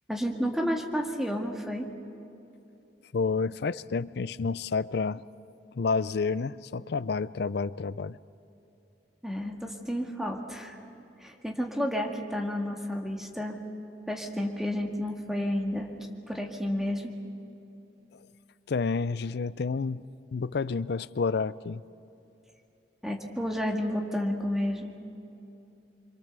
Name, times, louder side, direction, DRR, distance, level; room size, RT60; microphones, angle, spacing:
voice 1, 0.1-1.9 9.2-10.7 11.2-13.6 14.1-15.9 16.3-17.1 23.0-24.9, equal, ahead, 1 dB, 2.0 m, -31 dB
voice 2, 3.1-5.2 5.7-8.2 18.7-20.0 20.3-21.8, left 4 dB, 65° left, 17 dB, 0.5 m, -29 dB
26.5 x 24.0 x 6.8 m, 2.9 s
head